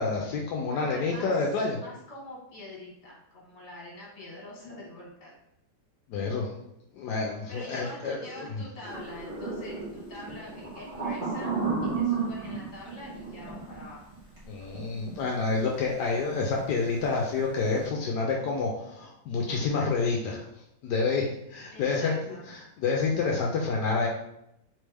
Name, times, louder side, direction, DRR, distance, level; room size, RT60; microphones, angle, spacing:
voice 1, 0.0-1.8 6.1-6.5 6.9-8.6 14.5-20.4 20.8-22.2 22.5-24.1, left 4 dB, 80° left, -1 dB, 1.2 m, -28 dB
voice 2, 0.7-1.3 1.8-5.3 7.5-11.5 11.9-14.0 21.7-22.4, left 1 dB, 45° left, -4 dB, 1.6 m, -44 dB
sound 1, 8.8-14.8 15.1-15.2 16.3-16.6 16.9-17.1, right 5 dB, 35° right, 1.4 m, -32 dB
3.7 x 3.2 x 3.4 m, 0.80 s
omnidirectional pair, 1.8 m